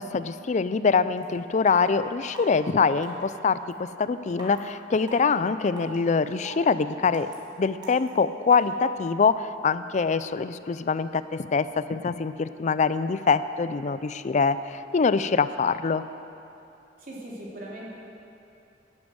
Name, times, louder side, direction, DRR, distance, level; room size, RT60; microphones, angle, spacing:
voice 1, 0.0-7.3 7.6-16.0, left 5 dB, 40° left, 14 dB, 0.4 m, -24 dB
sound 1, 1.2-1.3 1.7-1.8 2.3-2.4 3.0-3.2 3.7-3.8 4.4-4.6 5.1-5.2 5.8-6.0 6.4-6.6 7.1-7.3 7.8-8.1 8.5-8.6, right 1 dB, 25° right, 2.4 m, -40 dB
voice 2, 17.0-17.9, right 1 dB, 50° right, -4 dB, 3.0 m, -39 dB
10.5 x 10.5 x 7.9 m, 2.8 s
head